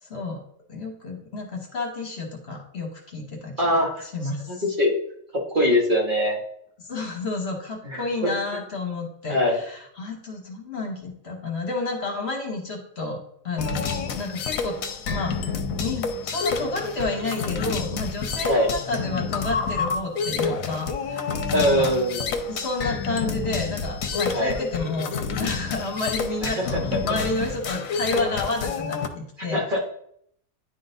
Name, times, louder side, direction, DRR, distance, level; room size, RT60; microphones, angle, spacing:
voice 1, 0.0-0.4 0.7-4.6 6.9-13.8 14.2-14.8 15.1-15.4 15.8-21.9 22.5-29.8, left 3 dB, 50° left, 0 dB, 1.3 m, -30 dB
voice 2, 3.6-4.0 4.5-4.9 5.5-6.4 7.8-8.0 9.3-9.6 18.5-18.7 21.5-22.3 24.3-24.5 26.4-26.8 29.5-29.8, left 1 dB, 40° right, -2 dB, 1.4 m, -22 dB
sound 1, 13.6-29.1, left 5 dB, 75° left, 1.1 m, -29 dB
10.5 x 3.8 x 2.6 m, 0.69 s
omnidirectional pair, 1.5 m